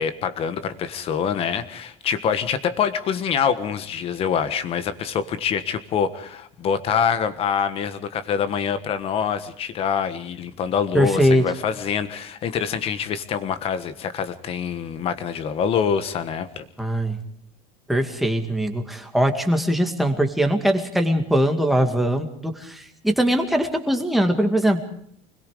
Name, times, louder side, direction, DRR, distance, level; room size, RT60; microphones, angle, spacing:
voice 1, 0.0-16.6, left 7 dB, 30° left, 11 dB, 1.4 m, -25 dB
voice 2, 10.9-11.4 16.8-17.2 17.9-24.8, equal, ahead, 4 dB, 2.1 m, -21 dB
25.5 x 21.0 x 5.0 m, 0.65 s
cardioid pair, 160°, 18 cm